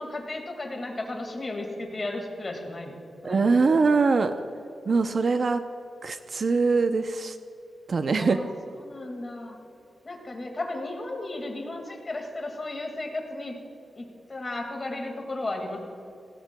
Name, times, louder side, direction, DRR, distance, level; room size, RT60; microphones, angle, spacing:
voice 1, 0.0-3.9 8.1-8.5 8.8-9.6 10.0-13.6 14.0-15.8, left 2 dB, 30° left, 3 dB, 1.9 m, -34 dB
voice 2, 3.2-4.3 4.9-5.6 6.0-7.4 7.9-8.4, right 4 dB, 45° right, 8 dB, 0.5 m, -22 dB
17.5 x 16.5 x 2.2 m, 2.7 s
wide cardioid pair, 135°, 0 cm